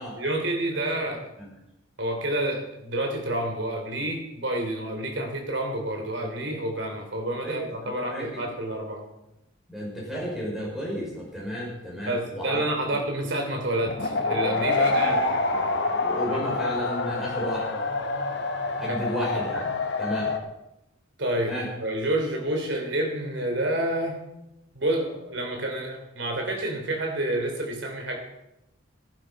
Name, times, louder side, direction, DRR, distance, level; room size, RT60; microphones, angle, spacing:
voice 1, 0.1-1.3 2.0-9.0 12.1-15.4 18.9-19.0 21.2-21.5 21.8-24.2 24.7-28.2, right 1 dB, 60° right, 3 dB, 3.2 m, -29 dB
voice 2, 7.4-8.3 9.7-12.6 12.9-13.0 14.9-15.2 16.0-17.8 18.8-19.7 20.0-20.3 21.5-21.7, equal, ahead, -5 dB, 5.4 m, -33 dB
sound 1, 13.8-20.4, left 3 dB, 55° left, 1.3 m, -27 dB
14.5 x 11.0 x 5.2 m, 0.89 s
head